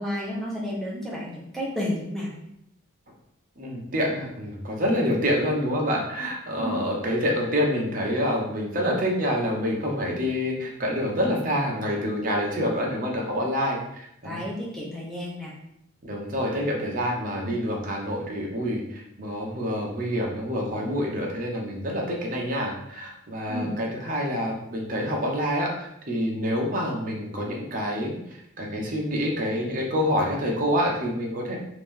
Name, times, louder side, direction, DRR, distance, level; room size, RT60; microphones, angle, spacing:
voice 1, 0.0-2.3 6.6-6.8 14.2-15.5 23.5-23.7, left 1 dB, ahead, -6 dB, 0.8 m, -31 dB
voice 2, 3.6-14.4 16.0-31.6, equal, 40° right, -1 dB, 0.7 m, -27 dB
2.9 x 2.6 x 3.5 m, 0.77 s
head